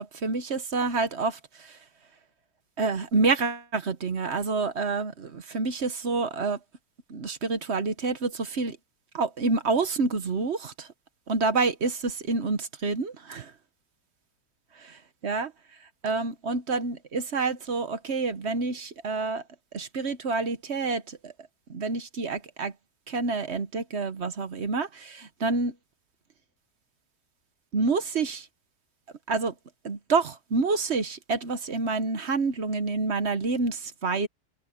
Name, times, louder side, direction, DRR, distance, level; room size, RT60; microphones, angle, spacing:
voice 1, 0.0-1.8 2.8-6.6 7.1-8.8 9.1-10.9 11.3-13.5 14.8-15.5 16.0-19.4 19.7-21.3 21.7-22.7 23.1-25.7 27.7-28.5 29.3-29.5 29.8-34.3, right 4 dB, 45° right, 1.2 m, -28 dB
omnidirectional pair, 1.7 m